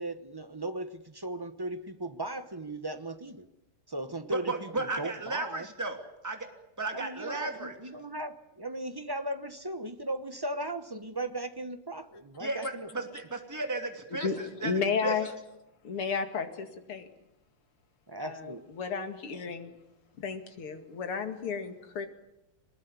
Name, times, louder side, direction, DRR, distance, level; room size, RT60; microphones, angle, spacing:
voice 1, 0.0-3.5 3.9-5.7 6.9-13.1 18.1-18.7, right 1 dB, 25° right, 10 dB, 0.5 m, -37 dB
voice 2, 4.3-6.5 6.8-7.7 12.4-14.7 15.0-15.1, right 2 dB, 10° right, 5 dB, 2.7 m, -34 dB
voice 3, 14.1-15.3 15.8-17.1 18.2-19.7 20.2-22.1, left 5 dB, 90° left, 7 dB, 3.1 m, -33 dB
23.5 x 20.0 x 9.7 m, 0.89 s
omnidirectional pair, 2.4 m